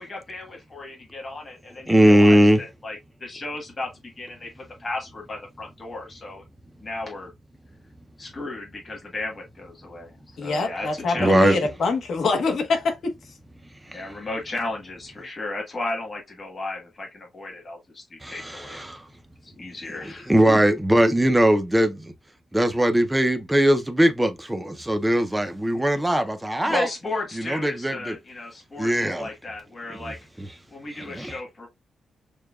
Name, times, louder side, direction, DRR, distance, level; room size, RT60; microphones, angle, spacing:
voice 1, 0.0-6.4 6.8-7.3 8.2-11.6 13.9-18.8 19.4-20.6 26.6-30.2 30.7-31.7, left 2 dB, 25° left, 1.3 m, -34 dB
voice 2, 1.9-2.6 11.2-11.6 13.9-14.0 18.2-19.0 20.0-22.1 22.5-26.9 27.4-28.2 28.8-29.3 30.0-30.1 30.4-30.5 31.0-31.3, right 1 dB, 5° right, 0.5 m, -20 dB
voice 3, 10.4-13.2, left 3 dB, 55° left, 1.0 m, -24 dB
6.6 x 2.2 x 2.3 m
wide cardioid pair, 180°, 0 cm